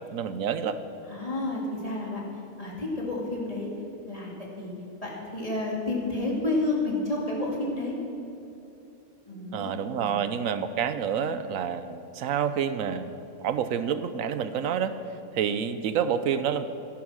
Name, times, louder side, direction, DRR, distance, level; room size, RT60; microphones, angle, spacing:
voice 1, 0.1-0.8 9.5-14.9 15.3-16.6, right 8 dB, 85° right, 12 dB, 1.1 m, -28 dB
voice 2, 1.1-2.2 2.6-3.7 4.1-4.3 4.6-4.7 5.0-7.9 9.3-10.2, left 2 dB, 25° left, -3 dB, 2.6 m, -30 dB
13.0 x 11.0 x 6.3 m, 2.9 s
omnidirectional pair, 1.4 m